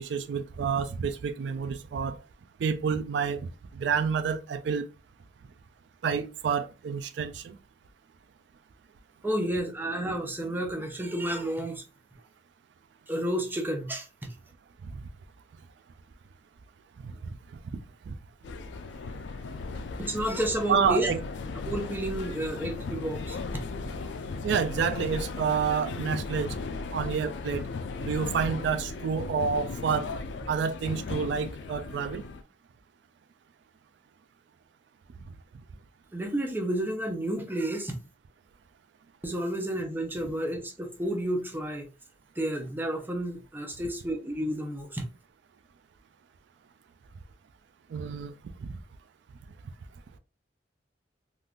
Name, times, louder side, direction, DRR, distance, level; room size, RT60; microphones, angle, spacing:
voice 1, 0.0-2.2 2.6-4.8 6.0-7.6 14.8-15.1 17.0-17.1 17.7-18.2 20.7-21.2 24.4-26.6 26.9-27.6 28.0-30.1 30.5-32.2 47.9-48.3 48.6-48.8, right 6 dB, 80° right, 0.3 m, -29 dB
voice 2, 9.2-11.8 13.1-14.1 20.0-21.1 21.7-23.4 36.1-38.0 39.2-41.9 42.4-45.0, right 1 dB, 10° right, 0.6 m, -31 dB
sound 1, 18.4-32.4, left 4 dB, 85° left, 0.4 m, -36 dB
3.5 x 2.5 x 2.4 m
head